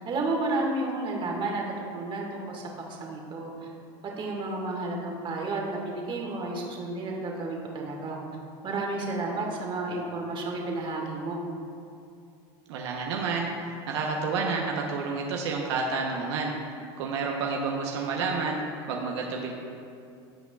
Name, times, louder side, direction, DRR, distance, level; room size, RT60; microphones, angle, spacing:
voice 1, 0.0-1.6 1.9-2.6 2.9-3.7 4.2-8.2 8.6-11.4, right 2 dB, 35° right, -1 dB, 1.7 m, -31 dB
voice 2, 12.7-13.5 13.9-16.5 17.0-18.6 18.9-19.5, right 4 dB, 80° right, 0 dB, 0.9 m, -29 dB
16.0 x 5.8 x 2.3 m, 2.5 s
supercardioid pair, 110°, 14 cm